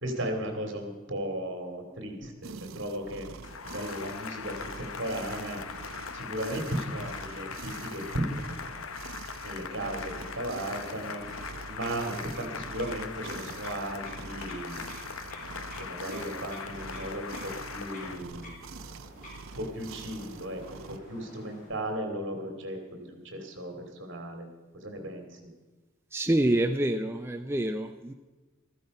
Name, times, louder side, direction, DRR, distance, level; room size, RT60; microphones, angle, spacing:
voice 1, 0.0-3.3 3.6-5.6 6.1-8.8 9.4-11.2 11.6-14.8 15.4-18.5 19.5-24.5 24.7-25.4, right 1 dB, 60° right, 4 dB, 2.6 m, -36 dB
sound 1, 2.4-21.0, right 4 dB, 80° right, 0.7 m, -45 dB
Cheering / Applause, 3.4-18.2, left 6 dB, 90° left, 0.8 m, -41 dB
sound 2, 10.1-21.9, left 1 dB, 40° left, 4.4 m, -50 dB
voice 2, 26.1-28.1, right 1 dB, 10° right, 6 dB, 0.4 m, -27 dB
15.0 x 14.0 x 5.4 m, 1.2 s
head